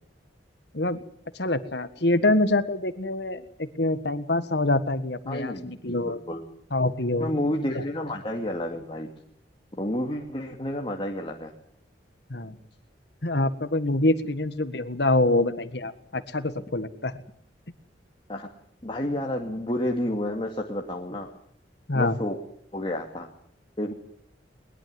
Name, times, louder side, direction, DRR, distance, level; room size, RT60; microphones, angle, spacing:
voice 1, 1.3-6.2 6.7-7.4 7.7-7.8 12.3-12.6 13.2-17.1 21.9-22.2, left 2 dB, 65° left, 11 dB, 1.6 m, -25 dB
voice 2, 5.3-6.4 7.2-9.1 9.8-11.5 18.3-18.5 18.8-21.3 21.9-22.4 22.7-23.3 23.8-23.9, left 1 dB, 30° left, 1 dB, 2.3 m, -30 dB
21.5 x 21.5 x 7.8 m, 0.67 s
head